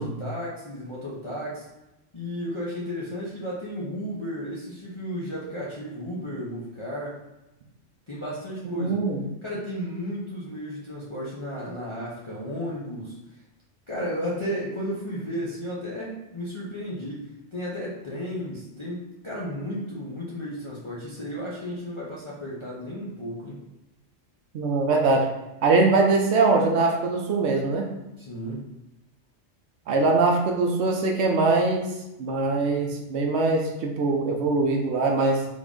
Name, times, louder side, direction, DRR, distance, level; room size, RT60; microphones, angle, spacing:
voice 1, 0.0-1.7 2.1-7.2 8.1-9.0 9.4-13.2 13.9-23.6 28.2-28.6, equal, 40° left, -7 dB, 0.4 m, -33 dB
voice 2, 8.6-9.2 24.5-25.3 25.6-27.9 29.9-31.9 32.2-35.5, right 3 dB, 65° right, 1 dB, 0.8 m, -22 dB
3.6 x 2.4 x 3.5 m, 0.96 s
omnidirectional pair, 1.3 m